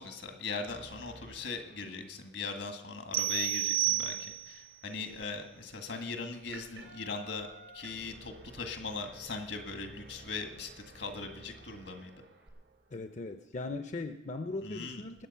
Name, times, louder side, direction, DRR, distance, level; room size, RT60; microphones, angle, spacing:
voice 1, 0.0-10.7 10.9-12.1 14.6-15.1, left 4 dB, 75° left, 6 dB, 1.9 m, -40 dB
sound 1, 0.7-2.7 7.8-13.4, right 2 dB, 65° right, 1.0 m, -55 dB
sound 2, 3.1-4.7, right 14 dB, 30° right, 0.4 m, -31 dB
sound 3, 3.8-12.5, right 3 dB, 85° right, 3.4 m, -57 dB
voice 2, 12.9-15.3, left 3 dB, 40° left, 8 dB, 0.6 m, -39 dB
20.5 x 7.9 x 5.6 m, 0.98 s
head